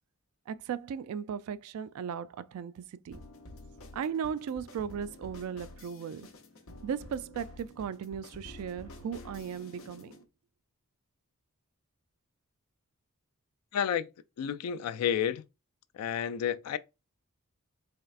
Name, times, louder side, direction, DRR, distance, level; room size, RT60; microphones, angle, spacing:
voice 1, 0.5-3.2 3.9-6.3 6.8-10.2, right 7 dB, 70° right, 0.3 m, -37 dB
sound 1, 3.1-10.2, left 1 dB, 65° left, 0.8 m, -49 dB
voice 2, 13.7-14.1 14.4-15.4 15.9-16.8, left 8 dB, 90° left, 0.3 m, -30 dB
4.3 x 3.2 x 2.4 m
head